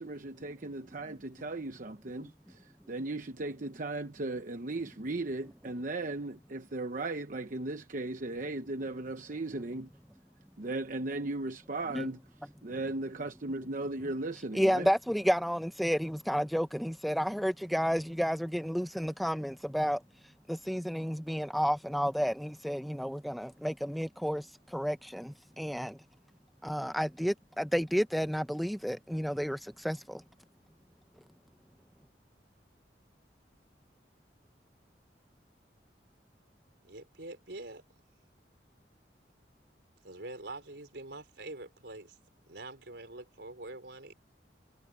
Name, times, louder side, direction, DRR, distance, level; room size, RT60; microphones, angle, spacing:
voice 1, 0.0-9.9 10.6-12.2 12.6-14.9, right 2 dB, 50° right, 0.9 m, -37 dB
voice 2, 14.5-20.0 20.5-26.0 26.6-30.2, equal, ahead, 0.6 m, -31 dB
voice 3, 36.8-37.8 40.0-42.2 42.5-44.1, right 2 dB, 75° right, 4.3 m, -45 dB
head